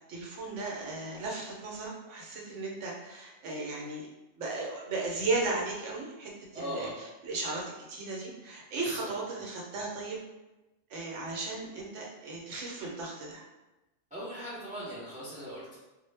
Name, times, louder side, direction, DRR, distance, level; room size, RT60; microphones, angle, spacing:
voice 1, 0.0-4.1 4.4-10.2 10.9-13.4, right 3 dB, 75° right, -2 dB, 0.9 m, -36 dB
voice 2, 6.5-6.9 8.8-9.1 14.1-15.8, equal, 10° right, -8 dB, 0.4 m, -39 dB
2.1 x 2.0 x 3.2 m, 1.0 s
omnidirectional pair, 1.3 m